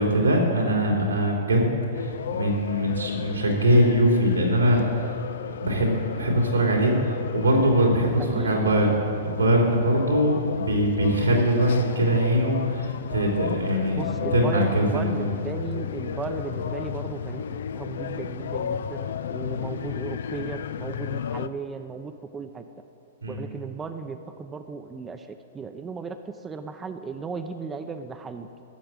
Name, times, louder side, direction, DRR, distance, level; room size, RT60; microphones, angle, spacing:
voice 1, 0.0-4.9 5.5-8.9 9.2-15.3 23.2-23.4, equal, 90° right, 0 dB, 3.2 m, -22 dB
sound 1, 1.9-21.5, left 8 dB, 65° left, 0.4 m, -34 dB
voice 2, 8.2-8.9 13.9-22.7 23.3-28.5, right 5 dB, 15° right, 7 dB, 0.7 m, -36 dB
12.5 x 7.8 x 8.9 m, 2.4 s
hypercardioid pair, 110°, 0 cm